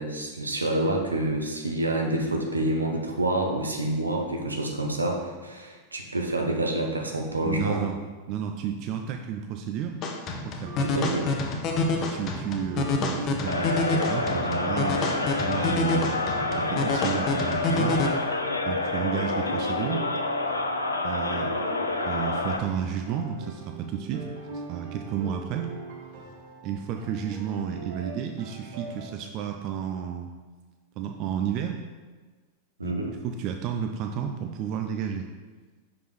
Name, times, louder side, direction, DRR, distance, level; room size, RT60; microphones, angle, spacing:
voice 1, 0.0-7.8 10.8-11.3 32.8-33.1, right 1 dB, 80° right, 2 dB, 0.8 m, -28 dB
voice 2, 7.4-8.0 8.3-10.0 10.4-11.2 12.0-16.2 16.6-18.0 18.6-20.1 21.0-21.5 22.0-24.3 24.5-25.7 26.6-30.3 31.0-31.8 32.8-32.9 33.2-35.3, right 8 dB, 40° right, 4 dB, 0.4 m, -32 dB
sound 1, 10.0-18.1, left 3 dB, 35° left, 0.7 m, -28 dB
sound 2, 10.6-29.1, right 2 dB, 55° right, 1.2 m, -42 dB
sound 3, 13.5-22.6, left 2 dB, 80° left, 0.4 m, -28 dB
6.0 x 5.0 x 3.1 m, 1.3 s
figure-of-eight pair, 90°, 0 cm